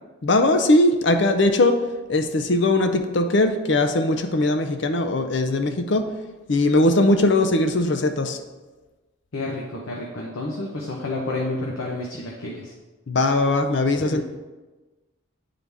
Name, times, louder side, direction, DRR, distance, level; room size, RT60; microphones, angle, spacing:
voice 1, 0.2-1.8 2.1-6.1 6.5-8.4 13.1-14.2, left 2 dB, 60° left, 7 dB, 0.5 m, -20 dB
voice 2, 9.3-12.7 14.0-14.2, left 2 dB, 85° left, -2 dB, 0.8 m, -30 dB
9.4 x 3.8 x 3.5 m, 1.2 s
head